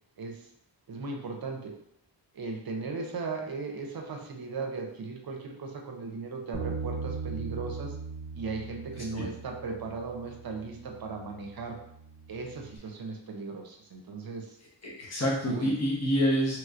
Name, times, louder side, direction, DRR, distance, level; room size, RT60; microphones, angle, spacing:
voice 1, 0.9-1.7 2.3-8.0 8.3-11.8 12.3-14.6 15.4-15.7, right 4 dB, 50° right, 2 dB, 0.7 m, -37 dB
Bass guitar, 6.5-12.8, right 5 dB, 10° left, 1.1 m, -40 dB
voice 2, 14.8-16.6, equal, 35° left, -5 dB, 1.1 m, -27 dB
3.1 x 3.0 x 2.5 m, 0.73 s
cardioid pair, 80°, 45 cm